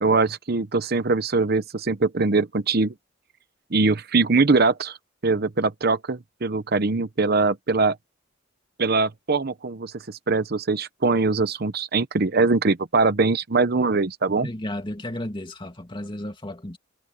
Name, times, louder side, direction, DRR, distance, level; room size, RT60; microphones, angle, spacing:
voice 1, 0.0-2.9 3.7-5.0 5.2-8.0 8.8-14.5, right 3 dB, 50° right, 0.8 m, -22 dB
voice 2, 14.4-16.8, left 1 dB, 25° left, 2.4 m, -33 dB
head